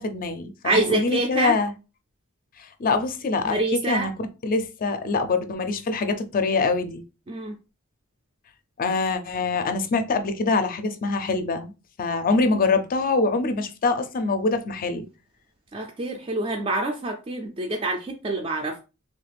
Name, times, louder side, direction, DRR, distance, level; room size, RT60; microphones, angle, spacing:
voice 1, 0.0-1.7 2.8-3.6 3.8-4.1 4.4-7.0 8.8-11.7 12.0-15.1, left 3 dB, 40° left, 0.4 m, -24 dB
voice 2, 0.6-1.6 3.5-4.1 7.3-7.5 15.7-18.8, right 2 dB, 25° right, 0.4 m, -26 dB
3.2 x 2.4 x 3.3 m
head